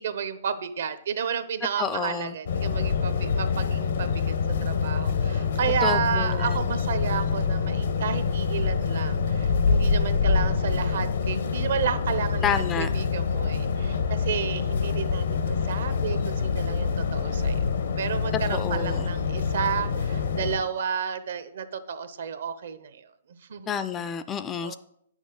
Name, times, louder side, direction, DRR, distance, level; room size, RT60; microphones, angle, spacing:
voice 1, 0.0-4.4 4.6-17.7 18.0-23.0 23.3-23.7 24.6-24.8, right 7 dB, 65° right, 11 dB, 0.7 m, -31 dB
voice 2, 1.8-2.4 5.8-6.7 12.4-12.9 18.5-19.1 23.7-24.7, left 7 dB, 15° left, 12 dB, 0.3 m, -29 dB
sound 1, 2.5-20.6, left 5 dB, 75° left, 0.9 m, -26 dB
8.6 x 6.3 x 3.8 m, 0.72 s
hypercardioid pair, 150°, 0 cm